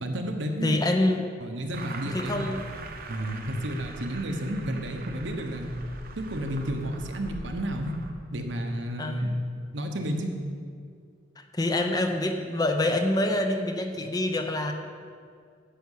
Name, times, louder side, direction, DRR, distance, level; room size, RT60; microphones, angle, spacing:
voice 1, 0.0-0.8 1.4-2.5 3.1-5.7 6.2-7.9 8.3-9.4 9.7-10.3, equal, 75° right, 4 dB, 1.1 m, -31 dB
voice 2, 0.6-1.2 2.1-2.6 9.0-9.2 11.4-14.7, left 1 dB, 20° left, 5 dB, 0.6 m, -26 dB
sound 1, 1.7-8.1, right 2 dB, 50° right, 0.9 m, -41 dB
10.5 x 5.9 x 7.4 m, 2.2 s
head